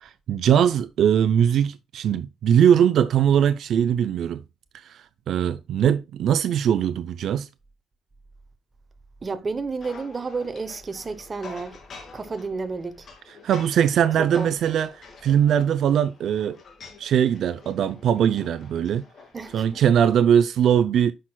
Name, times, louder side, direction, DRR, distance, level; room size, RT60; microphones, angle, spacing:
voice 1, 0.0-4.4 4.7-7.5 13.4-16.6 17.0-19.0 19.5-21.1, right 9 dB, 60° right, 0.5 m, -21 dB
voice 2, 9.2-11.8 12.1-13.1 14.2-14.6 19.3-19.7, right 4 dB, 25° right, 0.8 m, -31 dB
sound 1, 9.8-19.9, left 4 dB, 45° left, 2.6 m, -47 dB
10.0 x 6.2 x 2.3 m
cardioid pair, 125°, 0 cm